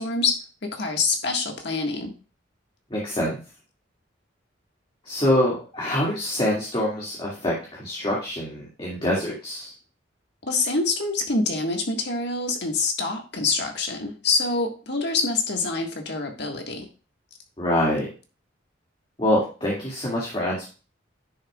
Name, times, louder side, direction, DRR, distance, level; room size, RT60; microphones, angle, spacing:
voice 1, 0.0-2.1 10.4-16.9, left 3 dB, 60° left, 3 dB, 1.7 m, -26 dB
voice 2, 2.9-3.4 5.1-9.7 17.6-18.1 19.2-20.6, left 1 dB, 30° left, -5 dB, 2.2 m, -25 dB
10.5 x 6.6 x 2.4 m, 0.34 s
head